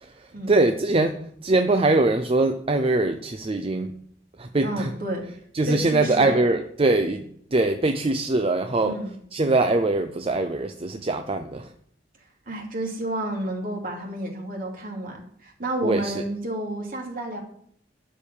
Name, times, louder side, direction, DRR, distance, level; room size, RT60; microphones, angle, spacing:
voice 1, 0.0-4.0 4.4-4.9 5.5-9.0 9.3-11.7 15.8-16.2, right 2 dB, 35° right, 7 dB, 0.6 m, -23 dB
voice 2, 4.6-5.2 5.7-6.4 8.8-9.1 12.5-17.4, right 1 dB, 55° right, 1 dB, 2.7 m, -30 dB
12.5 x 4.7 x 8.6 m, 0.68 s
head